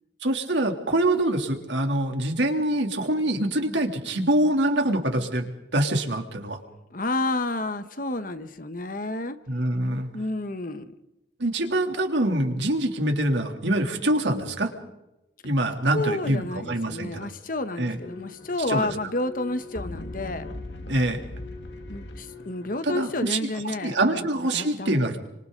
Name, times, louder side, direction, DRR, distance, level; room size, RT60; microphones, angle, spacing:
voice 1, 0.2-6.6 9.5-10.1 11.4-14.7 15.4-17.3 17.8-18.0 18.7-18.9 20.9-21.2 22.8-23.4 23.6-25.2, right 1 dB, 85° right, 3 dB, 3.3 m, -25 dB
voice 2, 6.9-9.4 10.1-10.9 15.9-20.5 21.9-25.1, left 2 dB, 50° left, 10 dB, 1.4 m, -30 dB
sound 1, 17.9-23.3, left 2 dB, 80° left, 2.1 m, -40 dB
30.0 x 26.0 x 4.1 m, 0.91 s
head